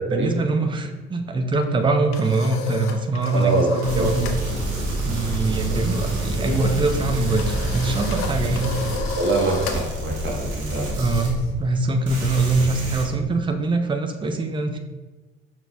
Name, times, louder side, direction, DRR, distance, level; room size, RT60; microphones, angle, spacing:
voice 1, 0.1-4.4 5.0-8.8 10.8-14.8, right 3 dB, 15° right, 5 dB, 0.5 m, -23 dB
sound 1, 1.7-4.4 4.7-5.0 5.3-11.9, left 5 dB, 50° left, 0.6 m, -34 dB
voice 2, 3.3-4.1 5.7-5.9 9.1-10.9, right 2 dB, 35° right, 0 dB, 1.2 m, -24 dB
sound 2, 3.8-11.8 12.1-13.0, right 1 dB, 60° right, 1.3 m, -27 dB
5.7 x 3.9 x 2.3 m, 1.2 s
figure-of-eight pair, 50°, 35 cm